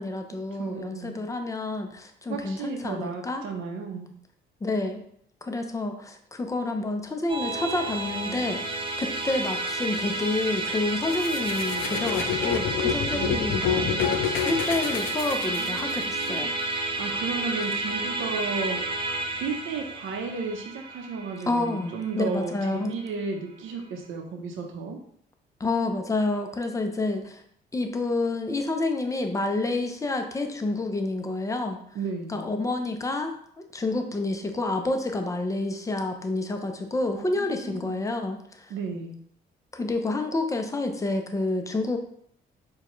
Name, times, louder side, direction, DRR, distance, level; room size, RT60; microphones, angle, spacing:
voice 1, 0.0-3.4 4.6-5.0 5.4-8.6 9.0-16.5 21.5-22.9 25.6-27.4 27.7-31.8 32.3-33.3 33.7-38.7 39.7-42.0, left 2 dB, 15° left, 5 dB, 0.5 m, -29 dB
voice 2, 0.6-1.2 2.3-4.1 13.1-14.2 15.5-18.8 19.4-25.0 31.9-32.4 37.1-38.0 38.7-39.2, right 4 dB, 85° right, 2 dB, 0.7 m, -34 dB
Musical instrument, 7.3-22.8, right 2 dB, 25° right, 0.7 m, -31 dB
sound 1, 11.1-16.0, left 9 dB, 80° left, 0.4 m, -29 dB
4.5 x 2.2 x 3.0 m, 0.67 s
cardioid pair, 90°, 20 cm